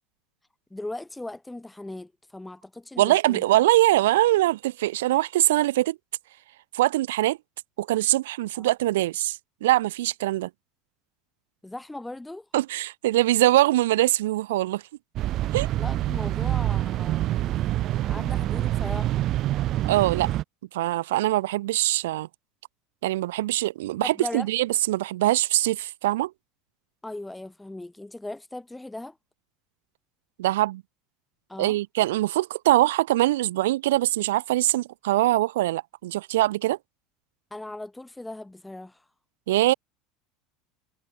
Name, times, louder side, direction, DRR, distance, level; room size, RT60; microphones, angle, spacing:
voice 1, 0.7-3.4 8.6-8.7 11.6-12.5 15.7-19.3 24.0-24.5 27.0-29.2 31.5-31.8 37.5-39.1, left 2 dB, 10° left, 2.2 m, -38 dB
voice 2, 3.0-6.0 6.7-7.4 7.8-10.5 12.5-14.8 15.5-15.7 19.8-20.3 20.7-22.3 23.0-26.3 30.4-30.8 31.6-36.8 39.5-39.7, right 16 dB, 85° right, 1.5 m, -23 dB
sound 1, 15.2-20.4, right 14 dB, 50° right, 0.5 m, -26 dB
supercardioid pair, 95°, 0 cm